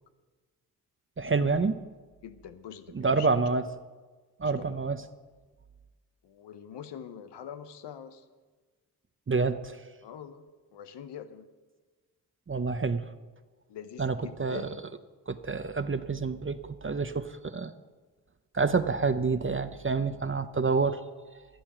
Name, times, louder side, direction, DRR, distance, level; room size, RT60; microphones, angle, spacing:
voice 1, 1.2-1.8 2.9-3.7 4.4-5.0 9.3-9.8 12.5-13.1 14.0-14.6 15.3-17.7 18.5-21.0 21.3-21.4, right 4 dB, 30° right, 10 dB, 0.8 m, -28 dB
voice 2, 2.2-3.3 4.4-4.8 6.2-8.3 10.0-10.4 10.7-11.5 13.7-14.8, left 8 dB, 85° left, 11 dB, 0.9 m, -44 dB
11.5 x 11.5 x 6.1 m, 1.3 s
supercardioid pair, 40°, 40 cm